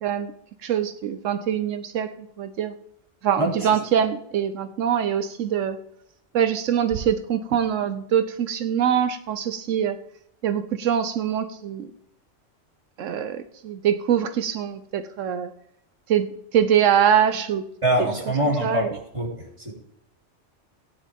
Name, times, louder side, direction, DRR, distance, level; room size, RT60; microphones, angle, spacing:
voice 1, 0.0-0.3 0.6-2.1 2.4-2.7 3.2-5.8 6.3-10.0 10.4-11.9 13.0-15.5 16.1-16.3 16.5-17.6 18.6-18.9, right 9 dB, 90° right, 10 dB, 1.2 m, -23 dB
voice 2, 3.4-3.8 17.8-18.8 19.1-19.7, right 1 dB, 25° right, -2 dB, 3.4 m, -24 dB
17.0 x 9.9 x 3.6 m, 0.74 s
omnidirectional pair, 1.3 m